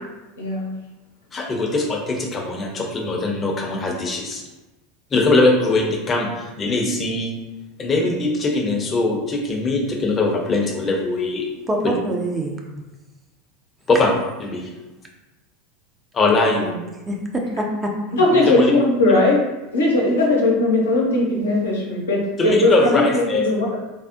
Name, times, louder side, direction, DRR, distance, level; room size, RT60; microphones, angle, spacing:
voice 1, 0.4-0.7 18.1-19.4 19.7-23.8, left 2 dB, 80° left, -2 dB, 0.7 m, -18 dB
voice 2, 1.3-4.4 5.1-7.3 7.8-11.5 11.8-11.9 13.9-14.1 14.4-14.7 16.1-16.7 18.3-18.7 22.4-23.5, left 2 dB, 30° left, 1 dB, 0.7 m, -21 dB
voice 3, 11.7-12.6 16.5-16.8 17.1-18.2, right 1 dB, 20° right, 0 dB, 0.6 m, -25 dB
3.4 x 2.0 x 2.7 m, 1.1 s
figure-of-eight pair, 80°, 0 cm